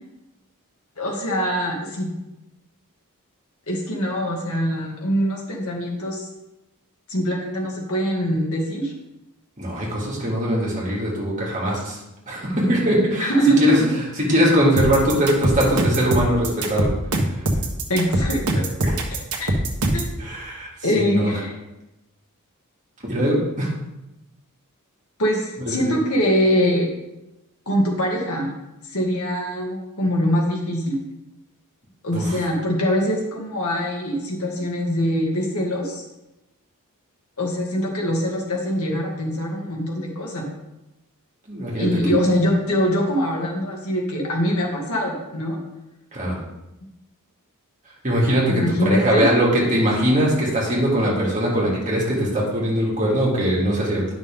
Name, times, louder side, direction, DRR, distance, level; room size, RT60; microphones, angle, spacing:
voice 1, 1.0-2.1 3.7-6.3 7.1-8.9 13.2-13.9 17.9-18.6 19.4-19.5 19.9-20.2 20.8-21.5 25.2-26.9 27.7-28.5 28.8-31.0 32.0-36.0 37.4-40.5 41.8-45.6 48.5-49.3, equal, 70° left, -1 dB, 2.1 m, -23 dB
voice 2, 9.6-12.0 12.3-13.3 13.6-13.8 14.3-16.9 18.8-18.9 20.2-20.7 20.9-21.3 23.1-23.7 25.6-25.8 32.1-32.3 41.5-41.9 46.1-46.4 48.0-54.0, equal, 35° right, -4 dB, 2.6 m, -21 dB
sound 1, 14.8-20.1, right 1 dB, 90° right, 1.3 m, -22 dB
10.5 x 6.1 x 3.7 m, 0.95 s
head